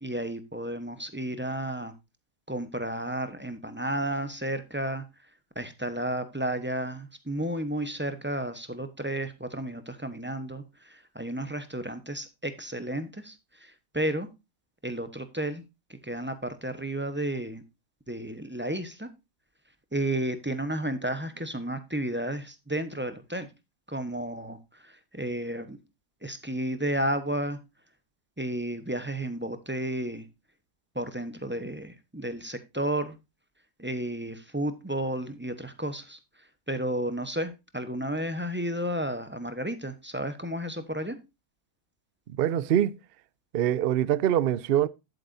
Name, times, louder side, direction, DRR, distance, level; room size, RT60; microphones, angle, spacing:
voice 1, 0.0-1.9 2.5-5.0 5.5-14.3 14.8-15.6 15.9-17.6 18.1-19.1 19.9-23.5 23.9-25.8 26.2-27.6 28.4-30.3 30.9-33.2 33.8-36.2 36.7-41.2, right 1 dB, 10° right, 0.8 m, -32 dB
voice 2, 42.4-42.9 43.5-44.9, right 11 dB, 65° right, 0.5 m, -24 dB
11.0 x 8.4 x 2.6 m
omnidirectional pair, 1.6 m